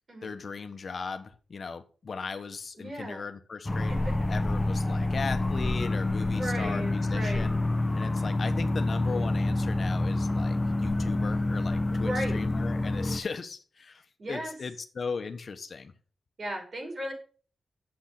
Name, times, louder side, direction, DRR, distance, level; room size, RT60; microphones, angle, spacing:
voice 1, 0.2-3.9 4.3-7.6 7.9-15.9, left 5 dB, 55° left, 1.1 m, -37 dB
voice 2, 2.8-3.2 3.9-4.1 6.3-7.5 11.9-12.4 14.2-14.5 16.4-17.1, right 1 dB, 50° right, 5.3 m, -35 dB
sound 1, 3.7-13.2, left 2 dB, 20° left, 0.9 m, -28 dB
8.0 x 7.9 x 5.9 m
cardioid pair, 85°, 0 cm